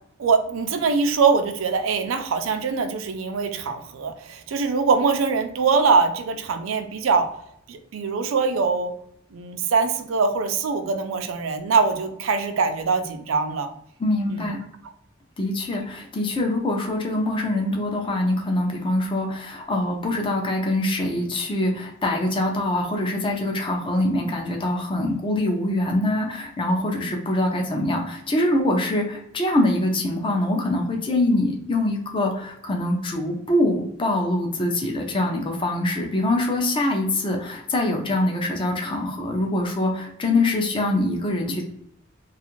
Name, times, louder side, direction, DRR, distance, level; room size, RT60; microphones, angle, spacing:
voice 1, 0.2-7.3 7.7-8.9 9.3-13.7 14.3-14.5, right 5 dB, 80° right, 8 dB, 0.4 m, -23 dB
voice 2, 14.0-14.6 15.4-41.6, left 1 dB, 25° left, 1 dB, 0.4 m, -24 dB
2.4 x 2.4 x 2.9 m, 0.72 s
head